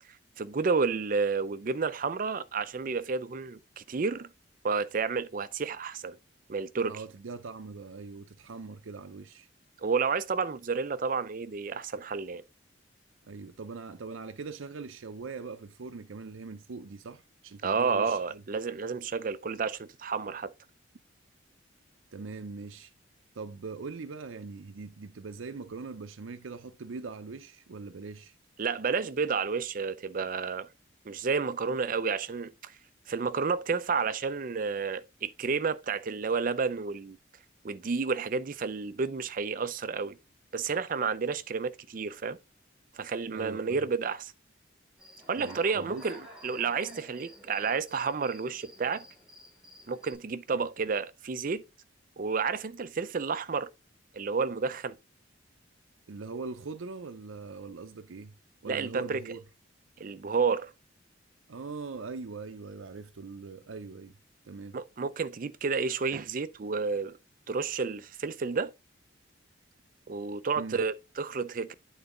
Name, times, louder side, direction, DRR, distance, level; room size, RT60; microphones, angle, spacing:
voice 1, 0.4-4.3 4.6-6.2 6.5-6.9 9.8-12.4 17.6-20.5 28.6-30.7 31.1-32.7 33.1-37.2 37.6-40.2 40.5-42.4 42.9-44.3 45.3-49.1 49.9-51.6 52.2-53.7 54.1-54.9 58.7-59.2 60.0-60.7 64.7-67.2 67.5-68.7 70.1-71.7, right 5 dB, 45° right, 0.4 m, -31 dB
voice 2, 6.9-9.5 13.2-18.4 22.1-22.9 23.4-28.3 43.3-43.8 45.4-46.0 50.5-50.7 56.1-58.3 58.6-59.4 61.5-64.1 64.5-64.8 70.6-70.8, right 4 dB, 90° right, 0.6 m, -41 dB
Human voice / Cricket, 45.0-50.1, equal, ahead, 2.6 m, -52 dB
8.9 x 4.0 x 3.7 m
head